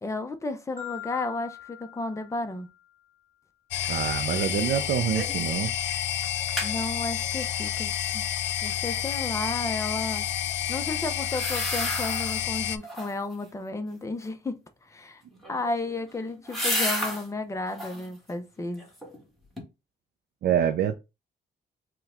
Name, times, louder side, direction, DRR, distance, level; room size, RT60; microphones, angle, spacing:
voice 1, 0.0-2.7 6.6-8.2 8.6-10.2 10.7-15.2 15.5-18.8, left 2 dB, 15° left, 0.6 m, -33 dB
Marimba xylophone, 0.8-3.0, left 12 dB, 45° left, 1.4 m, -43 dB
sound 1, 3.7-12.8, left 11 dB, 90° left, 0.4 m, -29 dB
voice 2, 3.9-5.7 20.4-20.9, right 9 dB, 65° right, 0.4 m, -26 dB
sound 2, 5.1-5.5 5.8-5.9 6.2-6.7 11.2-12.4 12.8-13.3 15.3-17.3 17.7-18.1 18.6-19.2 19.6-19.7, equal, ahead, 1.6 m, -32 dB
4.5 x 2.2 x 3.5 m
cardioid pair, 115°, 18 cm